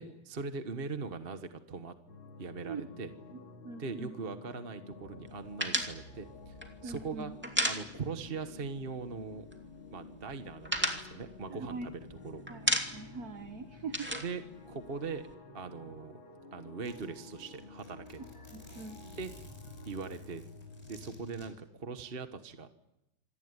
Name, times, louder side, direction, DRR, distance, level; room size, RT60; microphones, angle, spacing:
voice 1, 0.0-1.9 2.4-3.1 3.8-6.5 6.8-7.3 7.6-9.4 9.9-12.0 12.2-12.4 14.2-14.4 14.7-15.3 15.5-16.2 16.5-18.2 19.1-19.5 19.8-20.4 20.9-22.7, right 4 dB, 35° right, 8 dB, 1.2 m, -40 dB
sound 1, 2.1-21.5, left 3 dB, 70° left, 3.6 m, -51 dB
voice 2, 3.6-4.1 6.8-7.3 11.5-11.9 12.5-14.1 18.5-19.0, right 4 dB, 50° right, 8 dB, 1.5 m, -42 dB
sound 2, 5.6-8.4 8.6-8.8 9.1-9.8 10.1-12.1 12.5-13.2 13.5-15.3, equal, 5° right, 2.5 m, -33 dB
Zipper (clothing), 16.4-16.5 16.9-21.5, equal, 10° left, 5.7 m, -55 dB
26.5 x 19.0 x 9.7 m, 0.90 s
omnidirectional pair, 2.3 m